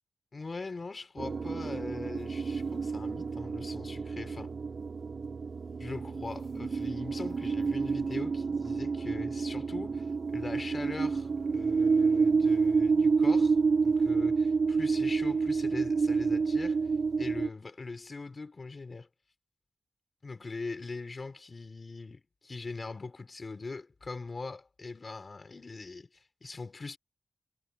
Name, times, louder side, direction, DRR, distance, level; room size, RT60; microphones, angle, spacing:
voice 1, 0.3-4.5 5.8-16.8 17.2-19.1 20.2-27.0, left 3 dB, 40° left, 4.7 m, -41 dB
sound 1, 1.2-17.5, right 5 dB, 60° right, 3.8 m, -29 dB
wide cardioid pair, 110°, 0 cm